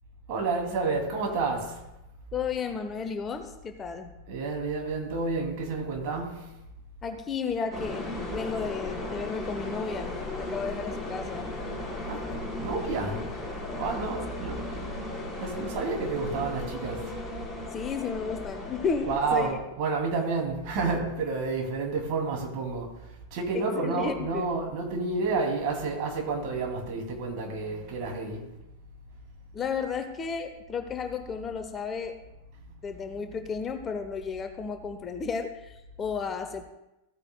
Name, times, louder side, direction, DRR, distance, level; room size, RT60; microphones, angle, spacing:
voice 1, 0.3-1.8 4.3-6.5 12.1-13.3 13.7-14.9 15.4-17.1 19.0-28.4, right 4 dB, 45° right, 1 dB, 2.5 m, -30 dB
voice 2, 2.3-4.1 7.0-11.5 14.4-14.5 17.7-19.6 23.5-24.5 29.5-32.2 32.8-36.6, left 5 dB, 20° left, 7 dB, 0.8 m, -33 dB
sound 1, 7.7-19.5, left 2 dB, ahead, 3.7 m, -36 dB
15.0 x 8.8 x 2.2 m, 0.92 s
figure-of-eight pair, 90°, 0 cm